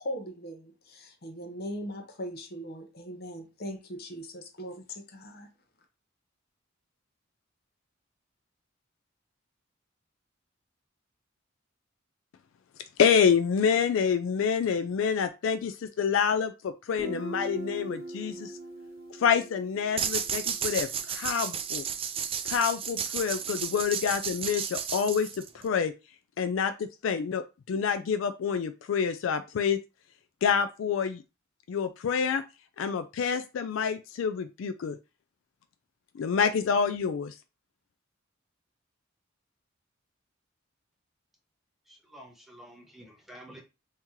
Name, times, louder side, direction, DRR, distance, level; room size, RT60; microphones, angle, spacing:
voice 1, 0.0-5.5, equal, 50° left, 0.8 m, -39 dB
voice 2, 13.0-18.5 19.2-21.8 22.5-25.9 26.4-29.8 30.4-31.2 31.7-32.4 32.8-35.0 36.1-37.3, left 7 dB, 70° left, 0.3 m, -27 dB
Guitar, 17.0-20.6, right 1 dB, 50° right, 1.2 m, -40 dB
sound 1, 20.0-25.7, right 7 dB, 30° right, 0.4 m, -33 dB
voice 3, 41.9-43.6, equal, ahead, 0.8 m, -50 dB
3.0 x 2.8 x 3.6 m
head